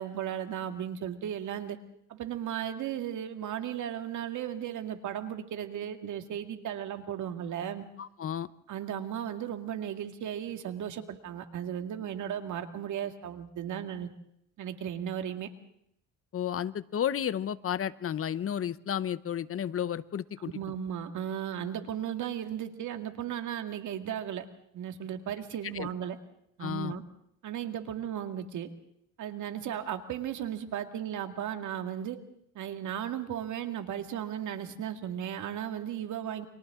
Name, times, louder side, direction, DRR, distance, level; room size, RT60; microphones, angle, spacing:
voice 1, 0.0-1.8 2.1-7.8 8.7-14.1 14.6-15.5 20.4-24.5 24.7-26.2 26.6-27.0 27.4-28.7 29.2-32.2 32.6-36.5, right 10 dB, 75° right, 6 dB, 2.1 m, -35 dB
voice 2, 8.0-8.5 16.3-20.5 25.7-25.9 26.6-26.9, left 9 dB, 45° left, 16 dB, 0.8 m, -32 dB
29.5 x 25.0 x 3.7 m, 0.74 s
cardioid pair, 90°, 30 cm